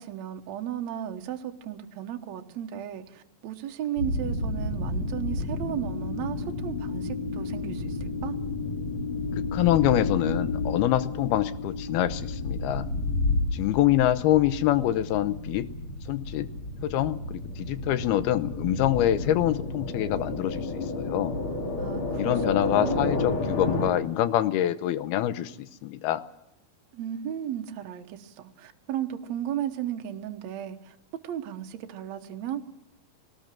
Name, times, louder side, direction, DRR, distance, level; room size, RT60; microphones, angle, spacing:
voice 1, 0.0-8.4 21.8-22.4 22.7-23.2 26.9-31.0 31.2-32.6, right 10 dB, 65° right, 5 dB, 2.0 m, -35 dB
sound 1, 4.0-23.9, left 2 dB, 35° left, 3.1 m, -31 dB
voice 2, 9.4-12.9 13.5-15.7 16.1-16.5 16.8-21.3 22.2-25.6 25.8-26.2, left 13 dB, 90° left, 13 dB, 2.8 m, -25 dB
20.5 x 19.0 x 7.5 m, 0.84 s
omnidirectional pair, 4.3 m